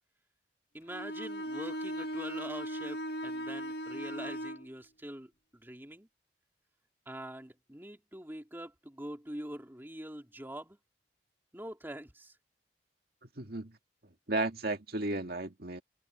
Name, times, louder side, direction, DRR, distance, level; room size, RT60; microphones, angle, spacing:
voice 1, 0.7-6.1 7.1-10.8 11.5-12.3, right 1 dB, 10° right, 2.5 m, -44 dB
Bowed string instrument, 0.9-4.7, equal, 60° left, 2.1 m, -38 dB
voice 2, 13.4-13.8 14.3-15.8, right 2 dB, 60° right, 2.1 m, -34 dB
head